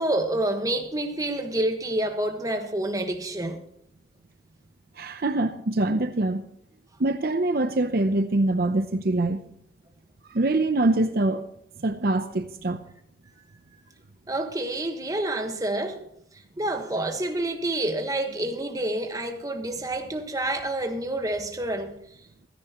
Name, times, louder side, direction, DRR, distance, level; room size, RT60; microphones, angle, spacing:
voice 1, 0.0-3.6 14.3-16.1 16.6-22.0, right 1 dB, 20° right, 1.4 m, -28 dB
voice 2, 5.0-6.4 7.0-9.4 10.3-11.5 11.8-12.8, right 2 dB, 55° right, 0.7 m, -24 dB
16.0 x 14.0 x 3.0 m
head